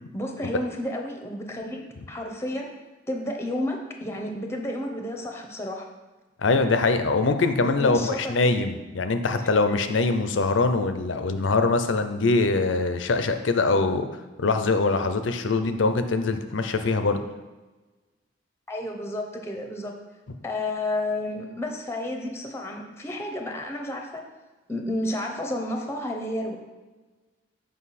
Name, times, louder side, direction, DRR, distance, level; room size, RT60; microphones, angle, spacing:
voice 1, 0.1-2.7 3.1-5.9 7.6-8.6 9.3-9.5 18.7-19.9 20.4-24.2 24.7-26.6, left 1 dB, 15° left, 2 dB, 0.8 m, -31 dB
voice 2, 6.4-14.1 14.4-17.2, left 3 dB, 85° left, 8 dB, 0.6 m, -23 dB
7.5 x 5.2 x 4.2 m, 1.2 s
head